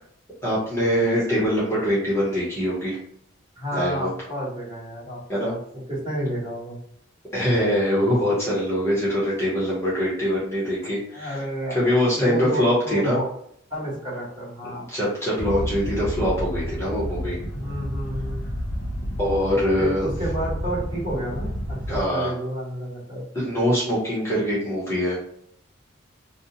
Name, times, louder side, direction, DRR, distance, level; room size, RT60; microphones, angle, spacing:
voice 1, 0.4-3.0 3.7-4.1 5.3-5.5 7.3-11.4 11.7-13.2 14.9-17.4 19.2-20.1 21.9-22.3 23.3-25.2, equal, 15° left, -8 dB, 0.8 m, -23 dB
voice 2, 3.6-5.6 5.9-6.8 11.1-13.3 13.7-14.8 17.5-18.4 19.8-23.2, right 1 dB, 25° right, -8 dB, 1.2 m, -30 dB
sound 1, 15.4-22.0, equal, 50° left, 0.5 m, -30 dB
2.6 x 2.0 x 2.7 m, 0.70 s
head